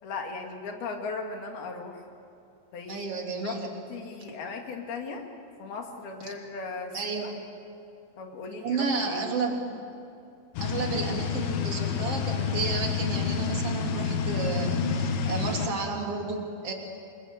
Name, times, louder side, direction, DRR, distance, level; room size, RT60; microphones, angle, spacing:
voice 1, 0.0-2.0 2.7-3.1 3.4-3.6 3.9-5.3 5.6-7.2 8.2-9.3, left 4 dB, 55° left, 3 dB, 3.6 m, -37 dB
voice 2, 2.9-3.7 6.9-7.4 8.5-9.8 10.6-16.7, right 4 dB, 35° right, 0 dB, 3.5 m, -32 dB
sound 1, 10.6-15.7, left 6 dB, 75° left, 4.0 m, -29 dB
27.5 x 24.0 x 8.4 m, 2.6 s
omnidirectional pair, 5.8 m